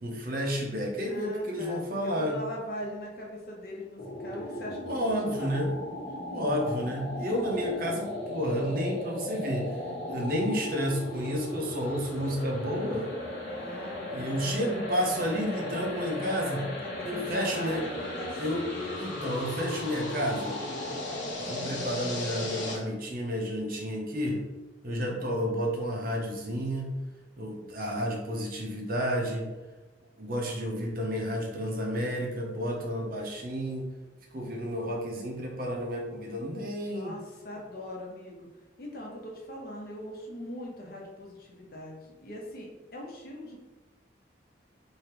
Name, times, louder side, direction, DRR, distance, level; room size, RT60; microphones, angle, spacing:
voice 1, 0.0-2.4 4.9-5.7 6.3-9.8 10.1-13.1 14.1-16.6 17.1-17.8 18.4-18.6 19.0-20.6 21.5-24.4 24.8-27.0 27.4-29.5 30.2-33.9 34.3-37.2, equal, 50° right, 0 dB, 0.8 m, -31 dB
voice 2, 1.0-5.0 5.2-5.6 13.5-14.8 15.5-19.2 25.1-25.3 36.8-38.5 38.8-43.6, left 1 dB, 55° left, -2 dB, 0.9 m, -41 dB
sound 1, 4.0-22.8, left 1 dB, 80° left, 1.0 m, -36 dB
3.3 x 2.7 x 4.4 m, 1.2 s
head